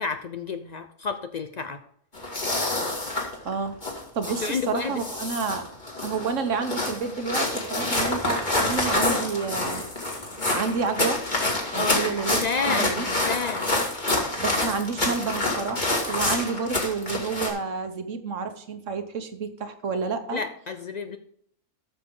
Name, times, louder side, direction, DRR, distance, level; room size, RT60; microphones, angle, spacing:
voice 1, 0.0-1.8 4.4-5.0 11.7-13.7 20.3-21.2, left 5 dB, 80° left, 8 dB, 0.3 m, -30 dB
sound 1, 2.1-17.5, left 2 dB, 30° left, 2.3 m, -27 dB
voice 2, 3.4-3.8 4.1-5.7 6.0-9.8 10.5-11.2 11.7-13.0 14.4-20.4, right 5 dB, 60° right, 8 dB, 1.4 m, -30 dB
13.5 x 6.7 x 3.8 m, 0.69 s
omnidirectional pair, 1.5 m